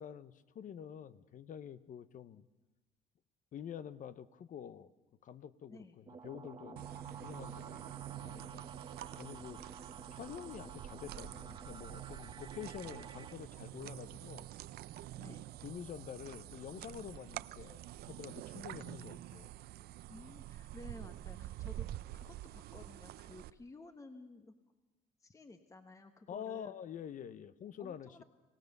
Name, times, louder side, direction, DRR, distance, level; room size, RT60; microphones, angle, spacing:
voice 1, 0.0-2.5 3.5-4.9 5.2-8.6 9.2-9.6 10.1-14.5 15.2-19.5 26.3-28.2, left 9 dB, 50° left, 16 dB, 0.9 m, -48 dB
sound 1, 6.1-13.3, right 5 dB, 25° right, 0.9 m, -51 dB
sound 2, 6.8-23.5, right 14 dB, 70° right, 0.6 m, -47 dB
voice 2, 20.1-24.6 25.2-26.7 27.8-28.2, left 2 dB, 20° left, 8 dB, 1.2 m, -54 dB
25.0 x 17.5 x 6.7 m, 1.1 s
cardioid pair, 110°, 17 cm